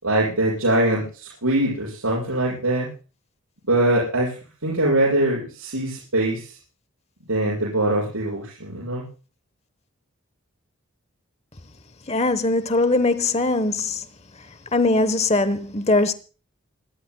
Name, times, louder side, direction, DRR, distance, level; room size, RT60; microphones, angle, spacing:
voice 1, 0.0-2.9 3.7-4.4 4.6-6.5 7.3-9.1, right 1 dB, 90° right, 7.5 m, -22 dB
voice 2, 12.1-14.0 14.7-16.1, left 2 dB, 30° left, 1.0 m, -21 dB
28.0 x 13.0 x 2.2 m
head